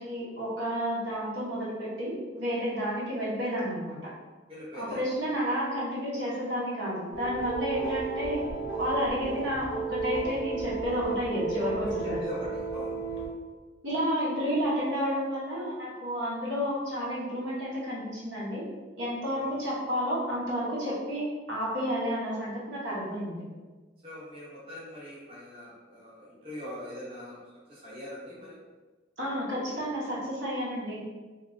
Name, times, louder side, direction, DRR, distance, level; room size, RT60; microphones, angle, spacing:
voice 1, 0.0-4.1 4.7-8.4 8.8-12.2 13.8-18.6 19.0-23.4 29.2-31.0, equal, 70° right, -7 dB, 0.9 m, -31 dB
voice 2, 4.5-5.0 7.7-7.8 11.8-13.3 19.4-19.5 24.0-27.4 27.7-28.6, left 1 dB, 30° right, -8 dB, 1.0 m, -42 dB
sound 1, 7.1-13.3, right 4 dB, 70° left, 0.6 m, -34 dB
3.0 x 2.9 x 2.5 m, 1.3 s
head